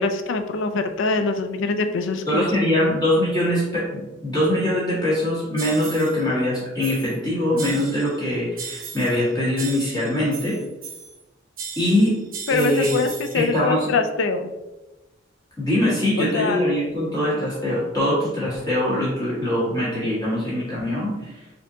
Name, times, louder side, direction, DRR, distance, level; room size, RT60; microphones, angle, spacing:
voice 1, 0.0-2.9 12.5-14.5 16.3-16.7, left 4 dB, 70° left, 7 dB, 0.4 m, -24 dB
voice 2, 2.3-10.6 11.8-12.2 12.5-13.1 13.3-13.9 15.6-21.3, left 1 dB, 20° left, -8 dB, 1.5 m, -22 dB
sound 1, 5.6-6.2 6.8-7.2 7.6-8.2 8.6-9.2 9.6-11.2 11.6-13.5, right 6 dB, 45° right, 0.6 m, -36 dB
4.1 x 2.8 x 2.6 m, 1.0 s
head